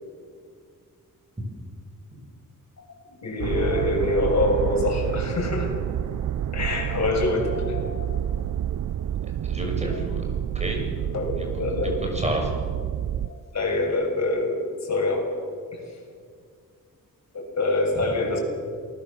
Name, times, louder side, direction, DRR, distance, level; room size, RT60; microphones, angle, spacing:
voice 1, 2.8-5.7 6.5-8.2 11.1-12.0 13.5-15.3 15.7-15.8 17.3-18.4, left 2 dB, 50° left, 1 dB, 7.0 m, -25 dB
sound 1, 3.4-13.3, right 10 dB, 60° right, 0.6 m, -29 dB
voice 2, 9.4-10.2 10.5-10.9 11.4-11.5 11.8-12.5 18.0-18.1, right 1 dB, 20° right, 2 dB, 6.9 m, -29 dB
28.0 x 20.0 x 7.4 m, 2.1 s
wide cardioid pair, 120°, 34 cm